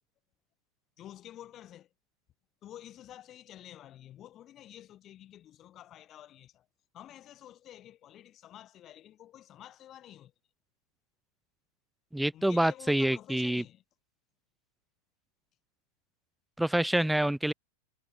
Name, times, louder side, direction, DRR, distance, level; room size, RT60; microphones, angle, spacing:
voice 1, 1.0-1.9 2.6-6.7 6.9-10.3 12.3-13.8, left 12 dB, 30° left, 3.6 m, -50 dB
voice 2, 12.1-13.6 16.6-17.5, right 1 dB, 5° right, 0.6 m, -27 dB
figure-of-eight pair, 90°, 0 cm